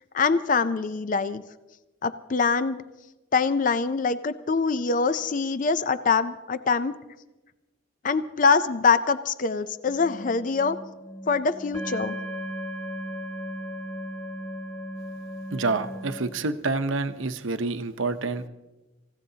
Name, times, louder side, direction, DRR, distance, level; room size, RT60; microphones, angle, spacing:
voice 1, 0.1-1.4 2.0-2.8 3.3-7.0 8.0-10.8 11.3-12.2, left 4 dB, 40° left, 12 dB, 0.5 m, -24 dB
sound 1, 9.9-16.2, equal, 15° left, 4.5 m, -36 dB
voice 2, 15.5-18.5, right 3 dB, 90° right, 9 dB, 0.8 m, -28 dB
27.0 x 16.0 x 2.8 m, 1.1 s
head